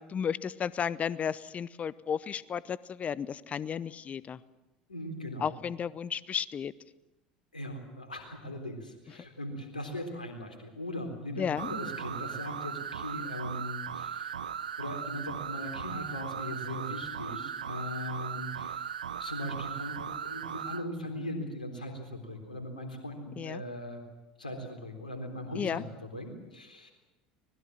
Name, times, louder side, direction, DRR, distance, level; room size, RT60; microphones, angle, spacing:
voice 1, 0.0-4.4 5.4-6.7 11.4-11.7 23.4-23.6 25.6-25.8, left 7 dB, 30° left, 20 dB, 0.8 m, -33 dB
voice 2, 4.9-5.6 7.5-14.4 14.8-18.8 19.2-24.0 24.4-26.9, left 1 dB, 85° left, 4 dB, 3.8 m, -39 dB
sound 1, 11.6-20.8, right 8 dB, 80° right, 0.8 m, -38 dB
24.5 x 20.0 x 7.4 m, 0.99 s
figure-of-eight pair, 70°, 4 cm